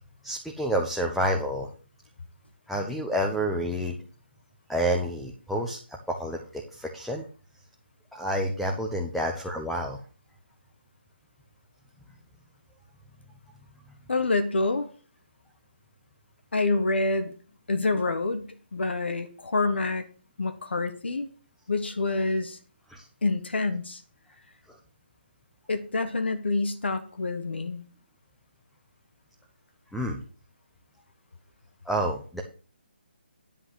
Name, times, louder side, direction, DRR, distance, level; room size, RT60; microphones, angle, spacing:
voice 1, 0.2-1.7 2.7-4.0 4.7-7.2 8.1-10.0 22.9-23.1 24.7-24.8 29.9-30.2 31.8-32.4, equal, ahead, 1 dB, 0.8 m, -29 dB
voice 2, 14.1-14.9 16.5-17.3 17.7-20.0 20.4-21.3 21.7-22.6 23.2-24.0 25.7-27.8, left 3 dB, 75° left, 8 dB, 1.6 m, -27 dB
10.0 x 5.6 x 6.5 m, 0.38 s
hypercardioid pair, 160°, 6 cm